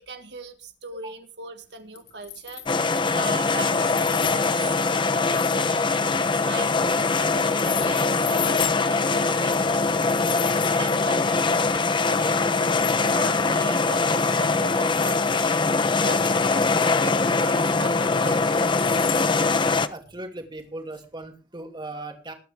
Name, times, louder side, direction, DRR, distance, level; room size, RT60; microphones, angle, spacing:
voice 1, 0.0-2.6 3.1-6.7 7.1-15.6 16.0-18.5, right 3 dB, 70° right, 7 dB, 1.7 m, -39 dB
sound 1, 1.9-2.7 3.0-3.5 3.9-6.5 6.8-8.7 9.4-11.0 11.5-11.6 12.3-12.4 12.6-13.5 14.0-15.5 15.7-16.9 17.2-17.3 17.5-17.6 18.4-20.1 20.4-20.5 20.9-21.0, left 9 dB, 70° left, 5.8 m, -36 dB
sound 2, 2.7-19.9, left 4 dB, 30° left, 0.8 m, -22 dB
voice 2, 19.9-22.3, right 2 dB, 25° right, 4 dB, 2.7 m, -37 dB
21.0 x 9.9 x 3.5 m, 0.34 s
head